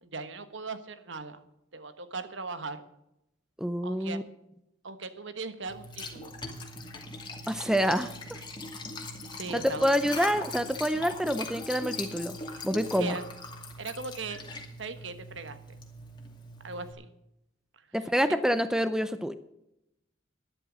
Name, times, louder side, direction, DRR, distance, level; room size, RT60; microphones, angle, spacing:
voice 1, 0.0-1.4 1.7-2.8 3.8-4.2 4.8-6.3 9.3-9.9 13.0-13.2 13.8-14.4 14.8-15.8 16.6-17.1, right 4 dB, 70° right, 10 dB, 1.3 m, -39 dB
voice 2, 3.6-4.2 7.5-8.4 9.5-12.4 12.6-13.2 17.9-19.3, equal, 5° right, 11 dB, 0.5 m, -27 dB
Liquid, 5.7-16.9, left 2 dB, 25° left, 2.3 m, -40 dB
12.0 x 11.0 x 6.2 m, 0.84 s
head